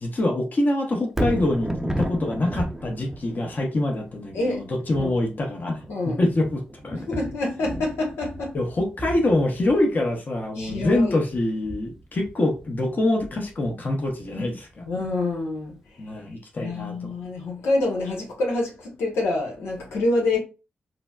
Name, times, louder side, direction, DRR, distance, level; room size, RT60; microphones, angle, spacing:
voice 1, 0.0-5.8 6.2-7.0 8.5-14.9 16.0-17.1, left 1 dB, 45° left, 1.0 m, -25 dB
Thunder, 1.0-15.3 15.7-15.8, right 1 dB, 10° right, 0.6 m, -35 dB
voice 2, 5.9-6.2 6.9-8.6 10.6-11.1 14.9-15.7 16.6-20.4, left 2 dB, 85° left, 1.0 m, -26 dB
3.9 x 2.1 x 2.4 m
supercardioid pair, 50°, 4 cm